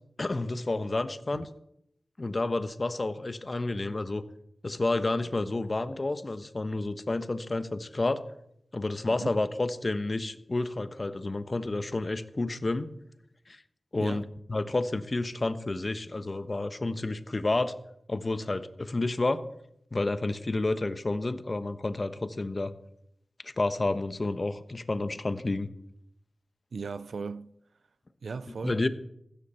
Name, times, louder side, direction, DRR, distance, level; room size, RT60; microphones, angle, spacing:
voice 1, 0.2-1.5 2.2-4.2 4.6-8.2 8.7-12.9 13.5-13.6 13.9-14.2 14.5-17.7 18.1-19.4 19.9-22.7 23.4-25.7 28.6-28.9, left 2 dB, 45° left, 1.1 m, -30 dB
voice 2, 26.7-27.5 28.2-28.8, right 4 dB, 90° right, 0.4 m, -37 dB
15.5 x 13.5 x 4.4 m
cardioid pair, 55°, 0 cm